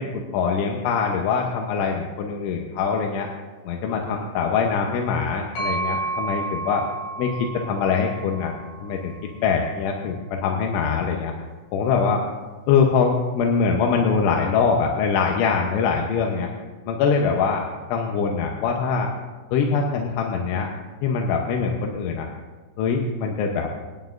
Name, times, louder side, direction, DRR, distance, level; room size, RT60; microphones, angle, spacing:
voice 1, 0.0-3.3 3.6-6.8 7.2-8.5 8.8-9.1 9.4-11.3 11.7-12.2 12.7-16.5 16.9-17.6 17.9-19.1 19.5-20.7 21.0-22.3 22.8-23.7, left 5 dB, 75° left, 1 dB, 3.1 m, -23 dB
sound 1, 5.6-9.3, right 3 dB, 60° left, 7.3 m, -31 dB
27.5 x 9.6 x 2.6 m, 1.3 s
omnidirectional pair, 5.9 m